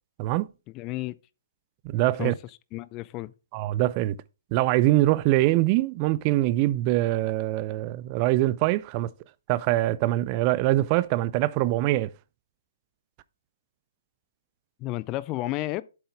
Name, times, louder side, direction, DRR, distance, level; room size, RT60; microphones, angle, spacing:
voice 1, 0.7-1.2 2.2-2.3 2.7-3.3 14.8-15.8, left 17 dB, 25° left, 0.6 m, -31 dB
voice 2, 1.8-2.3 3.5-4.2 4.5-9.1 9.5-12.1, right 16 dB, 30° right, 0.5 m, -23 dB
7.9 x 7.8 x 3.5 m
figure-of-eight pair, 130°, 0 cm